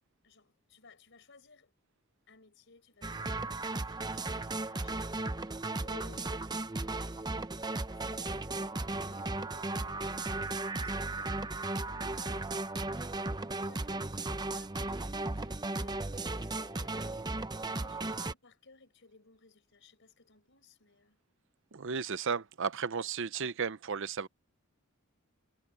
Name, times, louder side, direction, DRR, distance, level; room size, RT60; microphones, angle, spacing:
voice 1, 0.2-1.7 2.3-6.4 7.9-11.6 11.8-12.5 13.6-17.2 17.8-21.2, left 3 dB, 60° left, 4.8 m, -59 dB
sound 1, 3.0-18.3, right 2 dB, 20° right, 0.8 m, -36 dB
voice 2, 21.7-24.3, right 6 dB, 60° right, 0.7 m, -34 dB
head